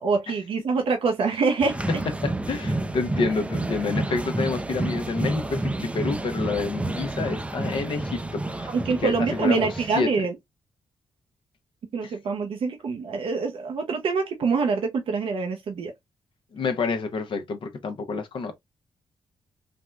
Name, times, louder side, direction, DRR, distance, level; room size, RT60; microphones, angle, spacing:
voice 1, 0.0-1.8 8.7-10.3 11.9-15.9, right 4 dB, 70° right, 0.7 m, -25 dB
sound 1, 1.6-10.0, right 2 dB, 10° right, 0.5 m, -30 dB
voice 2, 2.2-8.7 9.0-9.7 10.0-10.3 12.0-12.1 16.5-18.5, left 4 dB, 60° left, 0.7 m, -28 dB
3.5 x 2.1 x 2.4 m
supercardioid pair, 55°, 10 cm